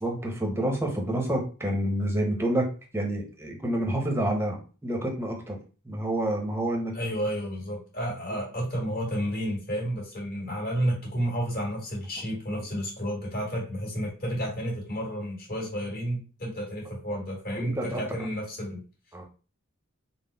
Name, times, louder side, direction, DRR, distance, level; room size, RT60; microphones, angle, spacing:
voice 1, 0.0-5.6 5.8-7.0 12.5-12.6 17.6-18.0 19.1-19.2, right 1 dB, 10° right, 0 dB, 0.8 m, -28 dB
voice 2, 6.9-18.8, equal, 45° left, -3 dB, 1.7 m, -31 dB
3.8 x 2.1 x 3.9 m, 0.35 s
head